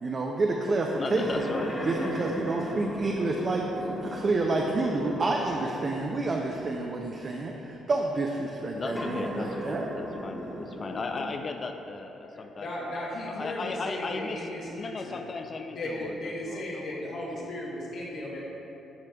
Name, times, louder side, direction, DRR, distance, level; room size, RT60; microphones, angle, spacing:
voice 1, 0.0-1.5 1.8-9.9, right 2 dB, 40° right, 0 dB, 0.4 m, -29 dB
voice 2, 1.0-2.4 8.7-12.7 13.4-17.0, left 3 dB, 40° left, 4 dB, 0.3 m, -36 dB
sound 1, 1.2-5.8 6.6-6.7 8.8-11.4, equal, 10° left, 1.1 m, -36 dB
voice 3, 12.2-15.2 15.7-18.5, left 1 dB, 75° left, -6 dB, 0.9 m, -36 dB
9.3 x 4.9 x 2.2 m, 3.0 s
cardioid pair, 90°, 0 cm